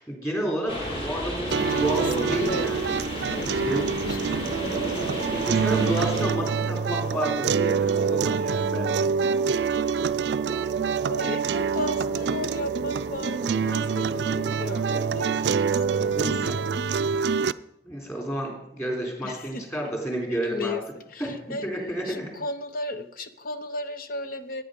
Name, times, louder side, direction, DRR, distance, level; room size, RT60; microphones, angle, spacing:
voice 1, 0.0-1.5 1.8-2.9 3.3-3.8 4.9-5.1 5.3-9.0 16.1-16.3 17.1-17.3 17.8-20.8 21.2-22.3, right 1 dB, 15° left, 0 dB, 3.8 m, -31 dB
sound 1, 0.7-6.3, equal, 30° left, 2.3 m, -32 dB
voice 2, 1.5-2.8 3.4-4.3 4.6-4.7 11.1-17.5 19.2-19.8 20.3-21.7 22.0-24.6, left 2 dB, 55° left, 10 dB, 0.9 m, -36 dB
sound 2, 1.5-17.5, right 5 dB, 80° right, 0.4 m, -26 dB
sound 3, 4.4-16.1, right 6 dB, 25° right, 0.6 m, -33 dB
16.5 x 9.2 x 5.3 m, 0.84 s
head